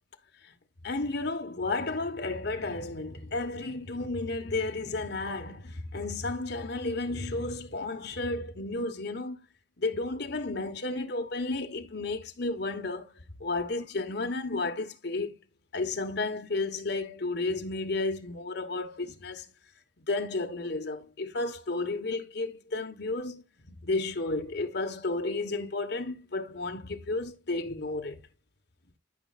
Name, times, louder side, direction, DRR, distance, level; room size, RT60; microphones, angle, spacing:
voice 1, 0.8-9.4 9.8-13.1 13.4-15.4 15.7-19.5 20.1-28.2, left 2 dB, 60° left, 1.3 m, -32 dB
13.5 x 5.3 x 2.5 m
head